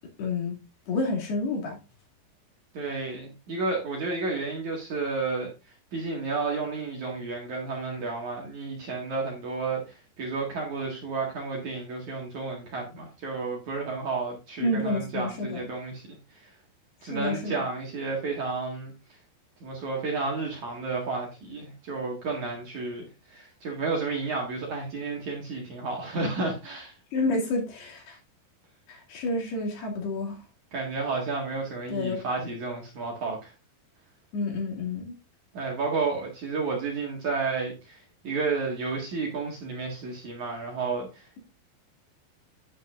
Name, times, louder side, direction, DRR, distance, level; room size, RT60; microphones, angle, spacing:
voice 1, 0.2-0.5 0.9-1.8 14.6-15.6 17.0-17.5 27.1-28.2 28.9-30.4 31.9-32.2 34.3-35.2, left 2 dB, 65° left, 4.5 m, -29 dB
voice 2, 2.7-5.5 5.9-16.0 16.3-16.5 17.0-18.9 19.6-26.9 30.7-33.5 35.5-41.4, right 4 dB, 50° right, 2.8 m, -31 dB
10.0 x 8.7 x 2.5 m
omnidirectional pair, 5.1 m